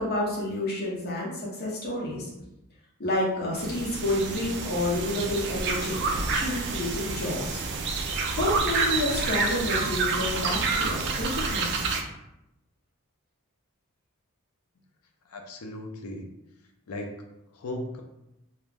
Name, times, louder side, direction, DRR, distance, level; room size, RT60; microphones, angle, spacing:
voice 1, 0.0-2.3 3.0-7.6 8.3-11.7, left 1 dB, 45° left, -4 dB, 0.8 m, -29 dB
sound 1, 3.5-12.0, right 4 dB, 50° right, 0.3 m, -28 dB
voice 2, 15.3-16.3 16.9-17.1 17.5-18.0, left 1 dB, 75° left, 3 dB, 0.5 m, -36 dB
2.4 x 2.1 x 3.3 m, 0.88 s
head